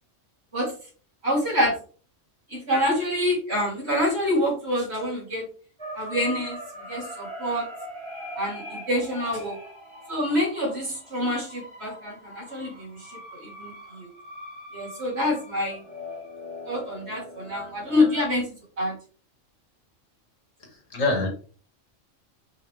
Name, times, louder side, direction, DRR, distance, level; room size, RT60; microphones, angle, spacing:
voice 1, 1.2-1.8 2.5-5.4 5.9-6.6 6.9-7.7 8.4-9.6 10.1-14.1 14.7-15.8 16.7-18.9, left 1 dB, 55° right, -4 dB, 3.6 m, -26 dB
sound 1, 5.8-18.3, equal, 20° right, 1.9 m, -41 dB
voice 2, 20.6-21.3, left 3 dB, 75° left, 2 dB, 2.1 m, -26 dB
5.3 x 5.3 x 3.4 m, 0.40 s
omnidirectional pair, 1.3 m